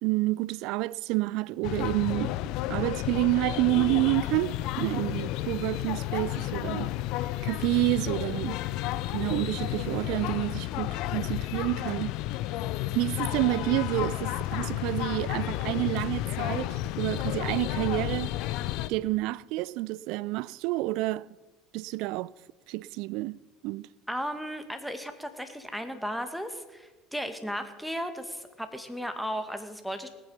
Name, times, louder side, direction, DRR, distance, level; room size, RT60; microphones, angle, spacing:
voice 1, 0.0-2.4 2.7-6.9 7.2-8.6 9.1-12.1 12.9-18.3 18.9-21.3 21.7-22.3 22.7-23.4 23.6-23.9, right 19 dB, 65° right, 0.3 m, -29 dB
sound 1, 1.6-18.9, left 14 dB, 60° left, 0.6 m, -32 dB
voice 2, 24.1-30.1, equal, ahead, 2.0 m, -35 dB
19.0 x 9.1 x 5.7 m
hypercardioid pair, 65°, 0 cm